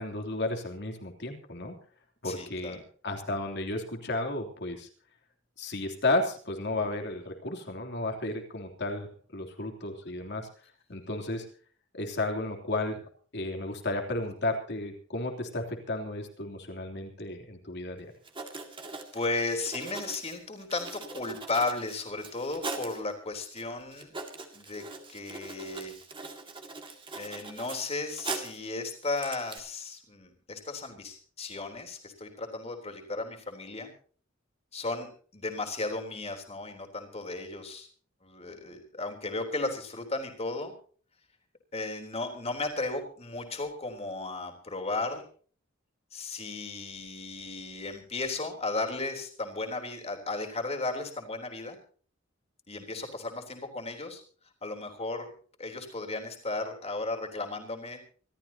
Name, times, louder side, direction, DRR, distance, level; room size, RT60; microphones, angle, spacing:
voice 1, 0.0-1.8 2.2-4.9 5.6-10.5 10.9-11.4 11.9-13.0 13.3-18.1, left 2 dB, 55° left, 3 dB, 3.3 m, -33 dB
voice 2, 2.2-2.8 19.1-24.1 24.5-24.8 25.1-26.0 27.2-33.9 34.7-35.1 35.3-37.9 38.2-40.7 41.7-45.2 46.1-51.8 52.7-54.2 54.6-55.3 55.6-58.0, left 3 dB, 30° left, 3 dB, 3.6 m, -35 dB
Writing, 18.0-18.1 18.2-23.0 23.6-23.7 23.9-28.7 29.0-29.6, right 3 dB, 25° right, 2.1 m, -41 dB
26.0 x 14.0 x 2.9 m, 0.44 s
head